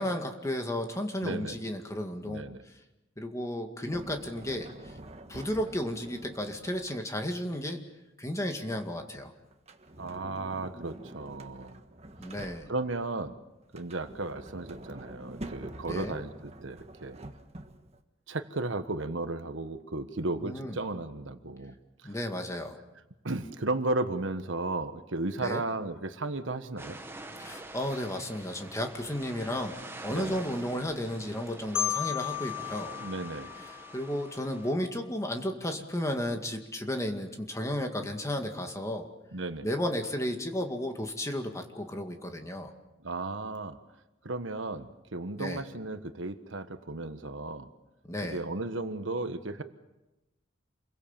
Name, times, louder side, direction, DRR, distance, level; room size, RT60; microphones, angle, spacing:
voice 1, 0.0-2.4 3.2-4.9 5.3-7.8 8.2-9.3 12.2-12.7 15.9-16.2 20.4-20.8 22.0-22.8 25.4-25.6 27.4-32.9 33.9-39.1 39.6-42.7 45.4-45.6 48.1-48.4, left 1 dB, 15° left, 4 dB, 2.1 m, -33 dB
voice 2, 1.2-1.6 2.2-2.6 10.0-11.7 12.7-13.4 13.7-17.2 18.3-21.7 22.0-22.2 23.2-27.0 30.1-30.4 33.0-33.5 39.3-39.7 43.0-43.8 44.2-47.7 48.2-49.6, right 2 dB, 75° right, 9 dB, 1.4 m, -34 dB
Sliding door, 3.9-7.4 9.5-13.0 13.6-18.0, right 1 dB, 35° right, 1.6 m, -46 dB
sound 1, 26.8-34.7, right 2 dB, 10° right, 1.6 m, -46 dB
Marimba xylophone, 31.7-34.6, left 12 dB, 85° left, 2.2 m, -35 dB
28.5 x 22.5 x 7.3 m, 1.0 s
head